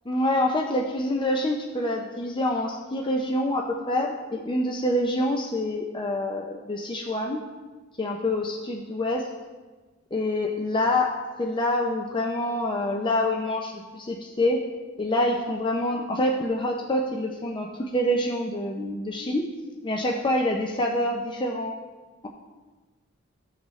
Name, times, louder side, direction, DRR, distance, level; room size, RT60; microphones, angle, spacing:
voice 1, 0.1-7.4 8.0-9.3 10.1-11.1 11.4-14.6 15.0-19.5 19.8-21.8, left 1 dB, 25° left, 0 dB, 0.6 m, -26 dB
14.0 x 6.2 x 3.2 m, 1.3 s
head